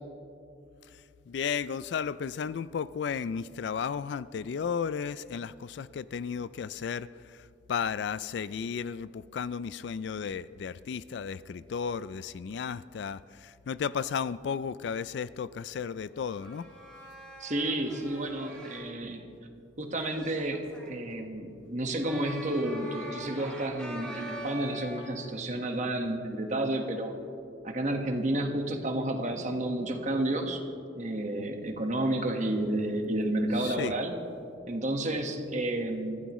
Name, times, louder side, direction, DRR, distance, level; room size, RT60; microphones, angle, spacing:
voice 1, 0.9-16.7 33.6-33.9, left 6 dB, 60° left, 17 dB, 0.3 m, -34 dB
sound 1, 16.1-18.9 20.1-21.0 22.0-25.2, equal, 5° left, 2.8 m, -44 dB
voice 2, 17.4-19.2 19.8-27.1 27.6-30.6 30.9-34.1 34.6-36.2, right 1 dB, 40° right, 4 dB, 1.4 m, -31 dB
24.0 x 15.0 x 3.1 m, 2.6 s
head